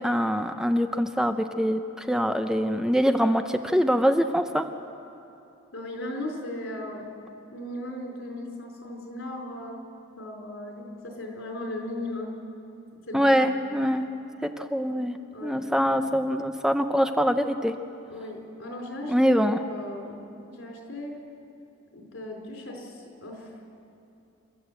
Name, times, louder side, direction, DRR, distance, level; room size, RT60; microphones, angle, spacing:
voice 1, 0.0-4.7 13.1-14.1 14.4-15.2 15.4-17.7 19.1-19.6, equal, 5° right, 7 dB, 0.6 m, -24 dB
voice 2, 5.7-7.1 7.5-9.8 10.2-12.3 13.1-13.3 13.7-13.8 15.3-15.6 18.1-21.1 21.9-23.5, left 1 dB, 90° left, 1 dB, 4.6 m, -37 dB
28.5 x 13.0 x 8.2 m, 2.8 s
head